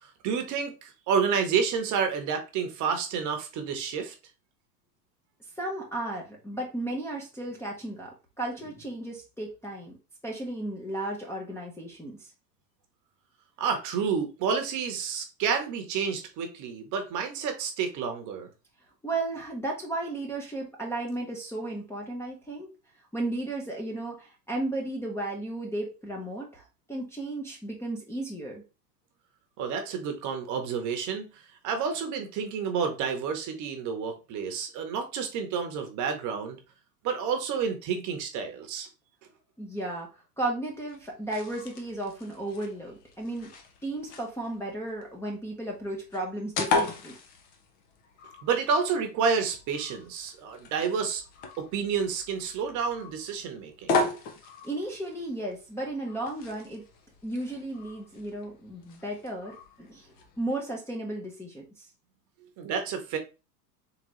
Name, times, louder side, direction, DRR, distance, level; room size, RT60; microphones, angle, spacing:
voice 1, 0.0-4.1 13.6-18.5 29.6-36.6 37.0-38.9 48.4-51.2 51.6-53.9 62.6-63.2, right 6 dB, 35° right, 1.0 m, -30 dB
voice 2, 5.6-9.9 10.2-12.3 19.0-22.7 23.1-28.6 39.6-43.5 43.8-47.2 54.6-56.8 57.2-61.9, right 2 dB, 5° left, 0.7 m, -34 dB
sound 1, 40.7-60.5, left 3 dB, 20° left, 0.3 m, -37 dB
3.8 x 3.3 x 3.1 m
hypercardioid pair, 120°, 49 cm